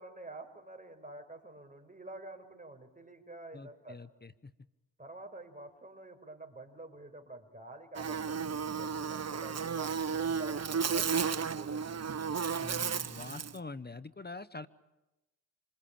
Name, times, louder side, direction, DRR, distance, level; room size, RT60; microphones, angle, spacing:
voice 1, 0.0-4.0 5.0-12.0, right 2 dB, 20° right, 5 dB, 6.0 m, -49 dB
voice 2, 3.5-4.5 12.6-14.7, left 3 dB, 20° left, 14 dB, 1.2 m, -45 dB
Buzz, 7.9-13.6, right 6 dB, 35° right, 1.0 m, -33 dB
27.0 x 22.5 x 8.9 m, 1.0 s
supercardioid pair, 45°, 45 cm